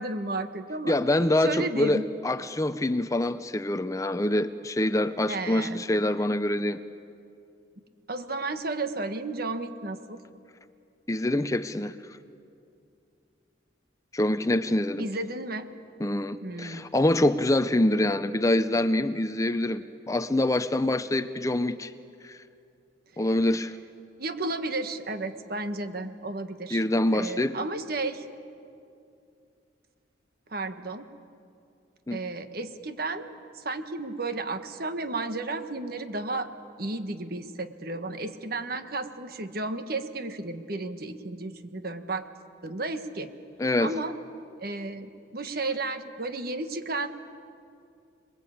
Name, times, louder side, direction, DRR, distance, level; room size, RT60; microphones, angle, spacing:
voice 1, 0.0-1.0 1.4-2.0 5.3-5.8 8.1-10.2 15.0-15.7 16.4-16.9 24.2-26.8 27.1-28.2 30.5-31.1 32.1-36.5 36.8-42.3 42.6-43.3 43.8-44.1 44.6-47.1, right 2 dB, 50° right, 8 dB, 1.4 m, -33 dB
voice 2, 0.9-6.8 11.1-11.9 14.1-15.1 16.0-21.9 22.2-22.4 23.2-23.8 26.7-27.6 32.1-32.2 43.6-44.0, left 1 dB, 15° left, 11 dB, 0.6 m, -25 dB
27.0 x 21.5 x 8.7 m, 2.5 s
head